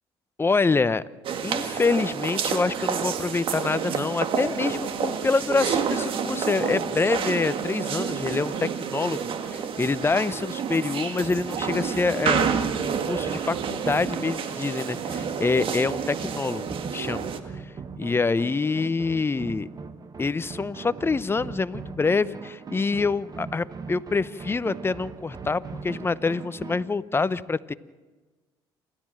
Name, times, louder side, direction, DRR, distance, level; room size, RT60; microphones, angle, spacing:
voice 1, 0.4-1.0 1.4-17.3 17.6-19.7 20.2-27.7, left 4 dB, 25° left, 16 dB, 0.8 m, -26 dB
sound 1, 1.2-17.4, right 7 dB, 60° right, 1.8 m, -29 dB
sound 2, 11.2-26.9, right 4 dB, 40° right, 1.4 m, -40 dB
28.5 x 13.0 x 7.5 m, 1.3 s
supercardioid pair, 75°, 10 cm